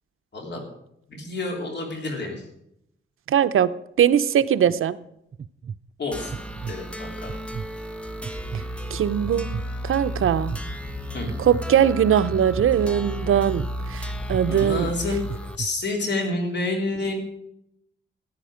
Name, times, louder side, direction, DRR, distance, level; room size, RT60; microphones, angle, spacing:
voice 1, 1.1-2.3 6.0-6.3 6.7-7.4 11.1-11.3 14.5-17.1, left 2 dB, 55° left, 1 dB, 3.4 m, -29 dB
voice 2, 3.3-5.0 8.5-8.6 8.9-10.5 11.4-14.9, right 9 dB, 85° right, 13 dB, 0.7 m, -21 dB
sound 1, 4.4-4.8 5.3-5.8 6.3-6.8 7.3-7.7 8.2-8.7 9.2-9.7 10.2-10.6 11.3-11.7 12.3-12.7 13.3-13.7 14.3-14.7 15.3-15.7, right 7 dB, 35° right, 0.4 m, -33 dB
sound 2, 6.1-15.6, equal, 5° left, 1.0 m, -32 dB
14.5 x 10.0 x 5.0 m, 0.76 s
wide cardioid pair, 115°, 21 cm